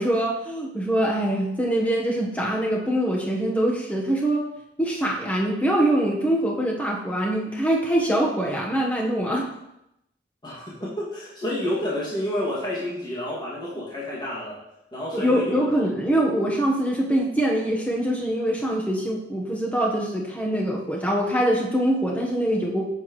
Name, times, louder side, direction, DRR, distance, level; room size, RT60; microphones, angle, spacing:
voice 1, 0.0-4.4 4.8-9.5 15.1-22.9, right 1 dB, 10° left, -2 dB, 1.2 m, -23 dB
voice 2, 10.4-14.6 14.9-15.9, left 1 dB, 25° left, -7 dB, 2.3 m, -30 dB
9.2 x 7.8 x 3.2 m, 0.84 s
head